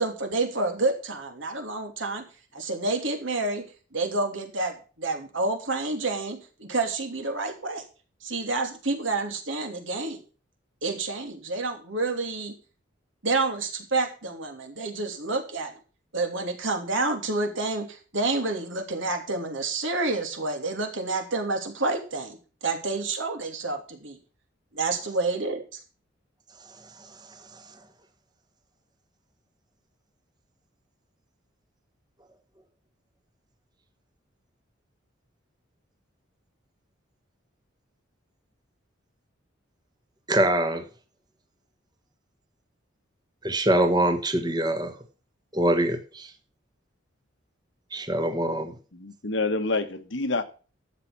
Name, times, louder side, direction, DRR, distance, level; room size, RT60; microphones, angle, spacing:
voice 1, 0.0-2.2 2.5-3.6 3.9-7.8 8.2-10.2 10.8-12.5 13.2-15.7 16.1-22.4 22.6-24.2 24.7-25.8, right 3 dB, 70° right, 3.0 m, -29 dB
voice 2, 40.3-40.8 43.4-44.9 45.5-46.3 47.9-48.7, right 1 dB, 20° right, 1.3 m, -24 dB
voice 3, 48.9-50.4, left 3 dB, 65° left, 1.3 m, -27 dB
12.5 x 7.6 x 6.0 m
head